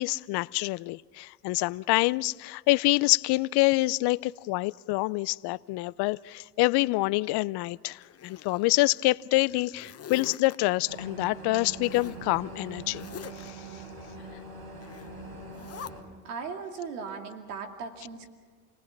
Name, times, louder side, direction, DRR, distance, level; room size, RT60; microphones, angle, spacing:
voice 1, 0.0-13.0 13.4-13.8, left 21 dB, 60° left, 0.6 m, -26 dB
Zipper (clothing), 8.0-9.0 9.4-10.6 11.8-12.2 12.9-13.5 14.8-15.1 15.5-15.9, left 8 dB, 35° left, 0.9 m, -44 dB
sound 1, 10.9-16.0, right 3 dB, 50° right, 6.3 m, -43 dB
voice 2, 16.2-18.3, right 5 dB, 85° right, 2.5 m, -38 dB
29.0 x 19.0 x 5.9 m
hypercardioid pair, 65°, 44 cm